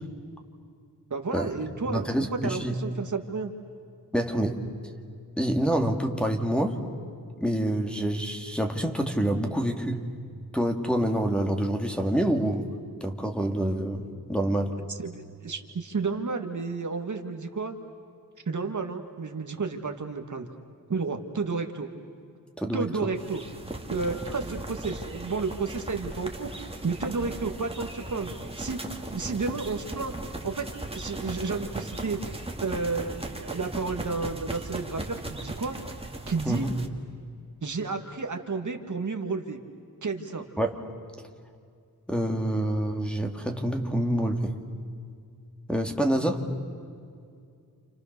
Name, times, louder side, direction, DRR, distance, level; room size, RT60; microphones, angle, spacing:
voice 1, 1.1-3.5 15.0-17.8 18.5-20.5 20.9-21.9 22.7-23.4 23.9-26.5 26.8-28.3 28.6-28.8 29.1-30.1 30.4-32.2 32.6-35.8 36.3-36.7 37.6-39.6 40.0-40.5, right 4 dB, 55° right, 5 dB, 2.0 m, -31 dB
voice 2, 1.8-2.7 4.1-4.7 5.4-6.8 7.4-10.0 10.5-12.7 13.0-14.0 14.3-14.8 22.6-22.9 36.5-36.7 40.6-40.8 42.1-44.6 45.7-46.4, right 1 dB, 5° left, 1 dB, 2.4 m, -27 dB
sound 1, 23.2-36.9, right 1 dB, 15° right, 2.4 m, -38 dB
30.0 x 28.5 x 6.8 m, 2.3 s
wide cardioid pair, 80°, 37 cm